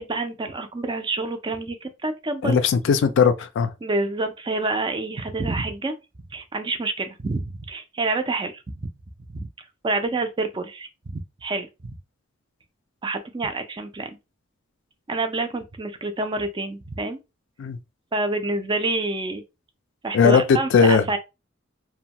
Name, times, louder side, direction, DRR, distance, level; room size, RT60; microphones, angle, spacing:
voice 1, 0.0-2.6 3.8-6.0 6.3-8.6 9.3-9.5 9.8-10.9 11.4-12.0 13.0-14.2 15.1-17.2 18.1-19.4 20.0-21.2, right 2 dB, 25° right, 0.4 m, -27 dB
voice 2, 2.4-3.7 17.6-17.8 20.1-21.2, left 6 dB, 65° left, 0.3 m, -18 dB
2.7 x 2.2 x 2.8 m
head